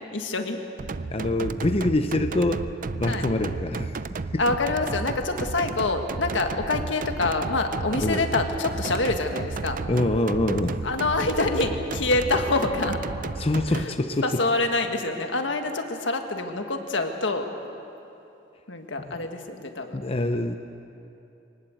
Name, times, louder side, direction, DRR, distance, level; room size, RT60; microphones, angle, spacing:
voice 1, 0.1-0.6 3.0-3.3 4.4-9.8 10.8-13.0 13.7-13.9 14.2-17.5 18.7-20.0, left 3 dB, 75° left, 5 dB, 1.8 m, -26 dB
sound 1, 0.8-13.8, right 3 dB, 45° right, 0.5 m, -33 dB
voice 2, 1.1-2.6 2.9-4.2 8.0-8.2 9.9-10.8 13.4-14.3 19.0-19.1 19.9-20.5, left 1 dB, 30° left, 6 dB, 0.7 m, -25 dB
23.5 x 19.0 x 7.8 m, 2.8 s
head